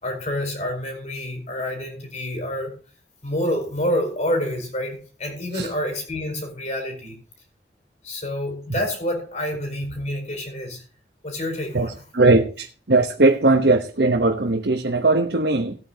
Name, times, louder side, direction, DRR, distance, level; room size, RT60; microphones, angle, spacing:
voice 1, 0.0-2.8 3.2-7.2 8.0-10.8 11.2-11.9, left 1 dB, 40° left, 4.6 m, -28 dB
voice 2, 11.7-15.8, right 2 dB, 70° right, 1.2 m, -19 dB
18.5 x 9.2 x 2.9 m
head